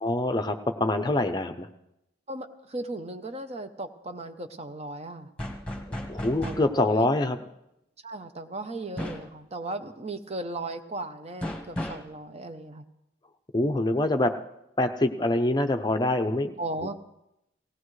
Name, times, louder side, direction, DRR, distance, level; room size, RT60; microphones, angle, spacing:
voice 1, 0.0-1.7 6.0-7.4 13.5-14.3 14.8-16.6, left 2 dB, 20° left, 7 dB, 0.6 m, -25 dB
voice 2, 2.3-5.3 6.4-7.1 8.0-12.8 16.6-16.9, right 2 dB, 35° right, 8 dB, 0.7 m, -36 dB
sound 1, 5.4-6.7 9.0-9.3 11.4-12.1, left 1 dB, 5° left, 1.3 m, -34 dB
18.5 x 17.0 x 3.2 m, 0.85 s
head